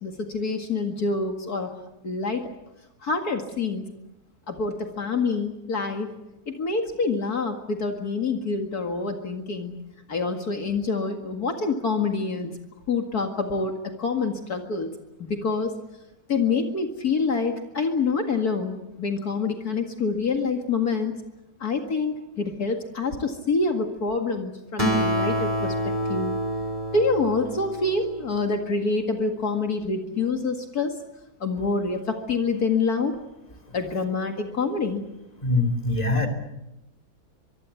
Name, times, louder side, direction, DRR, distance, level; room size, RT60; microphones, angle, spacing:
voice 1, 0.0-1.7 2.0-2.4 3.0-3.8 4.5-6.1 6.5-9.8 10.1-12.5 12.9-14.9 15.2-15.7 16.3-21.1 21.6-26.3 26.9-30.9 31.4-33.1 33.7-35.0, left 4 dB, 65° left, 4 dB, 2.5 m, -26 dB
Acoustic guitar, 24.8-28.5, equal, 25° right, 3.7 m, -27 dB
voice 2, 35.4-36.3, left 2 dB, 20° left, 4 dB, 3.4 m, -23 dB
24.5 x 23.0 x 8.4 m, 0.93 s
omnidirectional pair, 1.8 m